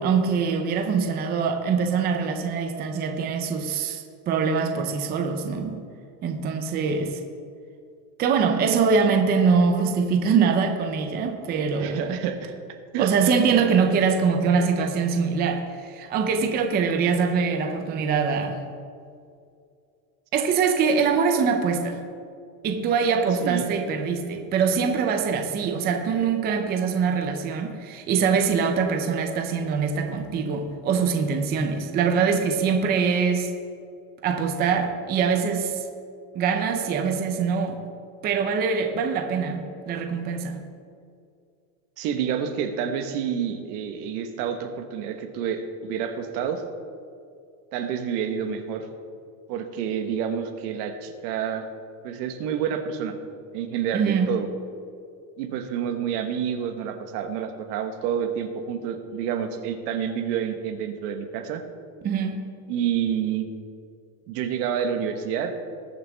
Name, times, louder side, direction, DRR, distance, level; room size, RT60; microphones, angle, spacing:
voice 1, 0.0-5.8 6.2-7.2 8.2-12.2 13.0-18.6 20.3-22.0 22.6-33.5 34.2-35.9 36.3-37.8 38.2-40.6 53.9-54.4 62.0-62.5, right 5 dB, 20° right, 4 dB, 0.6 m, -23 dB
voice 2, 11.8-12.5 12.9-13.1 23.4-23.6 42.0-46.6 47.7-48.9 49.5-51.7 52.0-53.1 53.5-54.5 55.4-61.6 62.7-63.5 64.3-65.5, right 8 dB, 75° right, 6 dB, 1.4 m, -28 dB
20.5 x 7.0 x 3.5 m, 2.4 s
cardioid pair, 170°, 47 cm